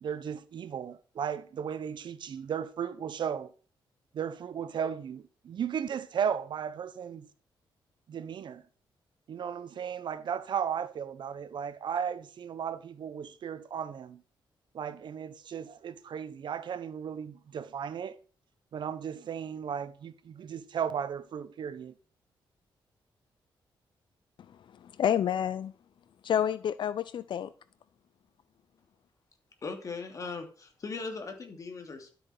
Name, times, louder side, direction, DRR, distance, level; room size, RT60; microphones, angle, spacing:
voice 1, 0.0-3.5 4.1-7.3 8.1-8.6 9.3-14.2 14.7-18.2 18.7-21.9, right 8 dB, 60° right, 1.0 m, -35 dB
voice 2, 24.7-25.7 26.2-27.5, left 9 dB, 65° left, 0.6 m, -29 dB
voice 3, 29.6-32.2, left 4 dB, 40° left, 2.8 m, -39 dB
12.5 x 8.4 x 6.0 m
wide cardioid pair, 150°, 9 cm